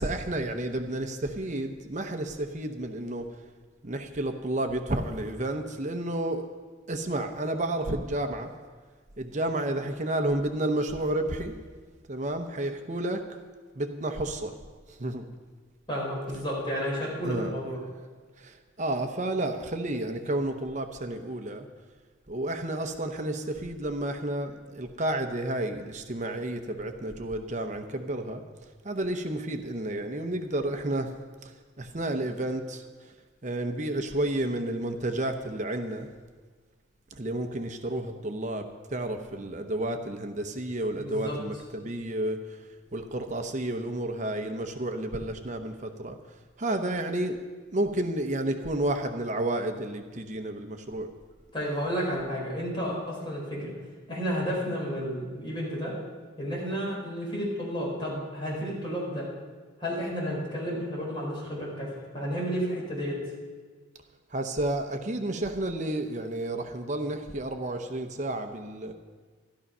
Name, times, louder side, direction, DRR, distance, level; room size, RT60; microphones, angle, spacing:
voice 1, 0.0-3.3 3.8-6.5 6.9-8.5 9.2-11.5 12.1-13.2 13.8-14.5 14.9-15.3 17.2-17.5 18.4-21.7 22.3-28.4 28.8-31.1 31.4-33.1 33.4-36.1 37.1-42.6 42.9-46.2 46.6-47.4 47.7-51.1 64.3-68.9, right 1 dB, 35° right, 6 dB, 0.8 m, -31 dB
voice 2, 15.9-17.8 41.0-41.4 51.5-53.7 54.1-56.0 56.4-59.3 59.8-63.2, equal, 25° left, -4 dB, 5.0 m, -31 dB
13.0 x 12.5 x 5.5 m, 1.5 s
head